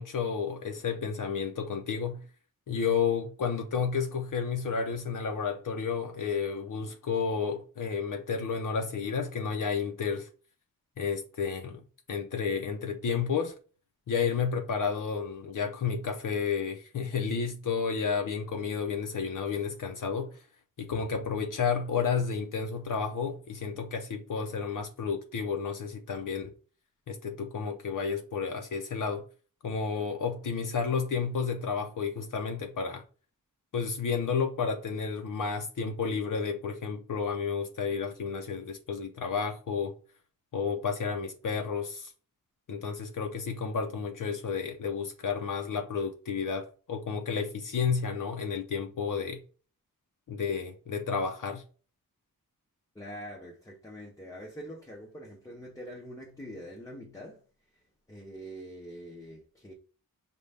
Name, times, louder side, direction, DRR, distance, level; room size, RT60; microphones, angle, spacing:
voice 1, 0.0-2.2 2.7-10.3 11.0-11.8 12.1-13.5 14.1-20.3 20.8-26.5 27.1-29.2 29.6-33.0 33.7-39.9 40.5-42.1 42.7-49.4 50.3-51.6, left 6 dB, 65° left, 0.6 m, -31 dB
voice 2, 52.9-57.4 58.1-59.7, equal, 10° left, 0.6 m, -44 dB
5.2 x 2.2 x 3.3 m
wide cardioid pair, 150°, 34 cm